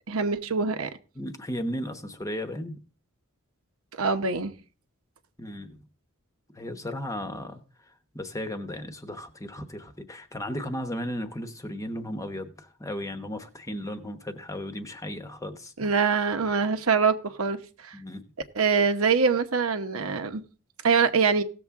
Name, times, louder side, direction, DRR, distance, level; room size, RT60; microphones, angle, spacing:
voice 1, 0.1-0.9 4.0-4.5 15.8-17.6 17.8-17.9 18.5-20.4 20.8-21.4, right 5 dB, 80° right, 1.0 m, -24 dB
voice 2, 1.2-2.8 5.4-5.8 6.5-7.6 8.1-15.7 17.9-18.2, left 1 dB, 15° left, 0.9 m, -35 dB
17.0 x 7.1 x 3.6 m
head